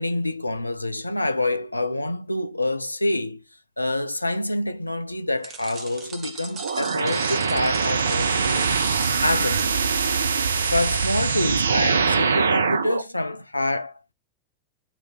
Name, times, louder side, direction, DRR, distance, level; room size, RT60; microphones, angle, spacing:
voice 1, 0.0-3.4 3.8-8.8 9.2-9.9 10.6-13.9, left 2 dB, 85° left, 0.4 m, -27 dB
sound 1, 5.4-11.4, right 5 dB, 35° right, 1.2 m, -39 dB
sound 2, 6.6-13.0, right 5 dB, 75° right, 0.4 m, -23 dB
8.5 x 3.2 x 3.9 m
figure-of-eight pair, 90°, 0 cm